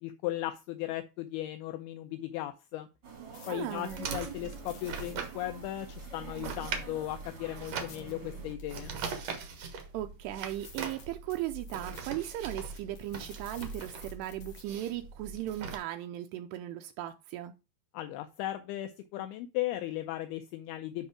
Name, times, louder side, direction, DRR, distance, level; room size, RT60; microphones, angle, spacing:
voice 1, 0.0-2.9 3.5-8.9 17.9-21.1, left 14 dB, 85° left, 2.3 m, -37 dB
sound 1, 3.0-8.5, right 6 dB, 45° right, 1.6 m, -47 dB
sound 2, 3.1-9.9 10.3-10.4 10.6-14.6, left 6 dB, 55° left, 3.0 m, -56 dB
voice 2, 3.5-4.0 9.9-17.5, right 13 dB, 85° right, 2.6 m, -37 dB
sound 3, 3.9-15.8, right 5 dB, 65° right, 1.6 m, -41 dB
10.0 x 3.5 x 4.8 m
omnidirectional pair, 4.9 m